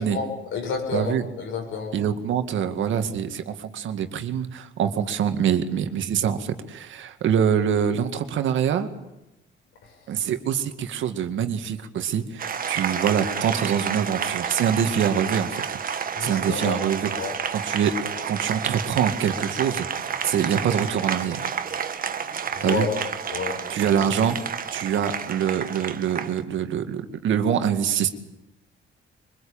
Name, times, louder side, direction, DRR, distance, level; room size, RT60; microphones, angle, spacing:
voice 1, 0.0-1.9 16.1-16.8 17.1-17.3 22.5-23.0 23.3-23.6, left 5 dB, 75° left, 2 dB, 7.3 m, -29 dB
voice 2, 0.9-1.3 1.9-8.9 10.1-15.8 16.2-17.1 17.5-17.9 18.3-21.5 22.6-22.9 23.7-24.4 24.7-28.1, right 8 dB, 75° right, 8 dB, 2.0 m, -25 dB
Applause, 12.4-26.4, right 7 dB, 45° right, 1.5 m, -30 dB
23.5 x 22.5 x 8.8 m, 0.94 s
cardioid pair, 90°, 20 cm